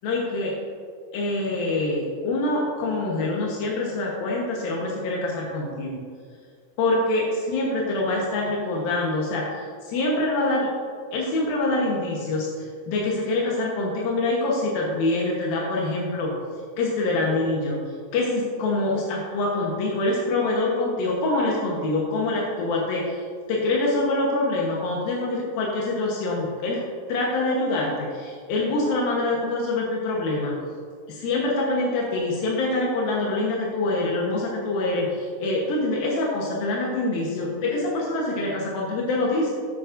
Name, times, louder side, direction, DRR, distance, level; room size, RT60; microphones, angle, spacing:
voice 1, 0.0-0.6 1.1-6.0 6.8-10.7 11.1-16.3 16.8-17.8 18.1-23.2 23.5-26.8 27.1-30.5 31.1-39.5, left 2 dB, 75° left, -3 dB, 2.1 m, -25 dB
17.5 x 7.2 x 2.6 m, 2.1 s
omnidirectional pair, 5.9 m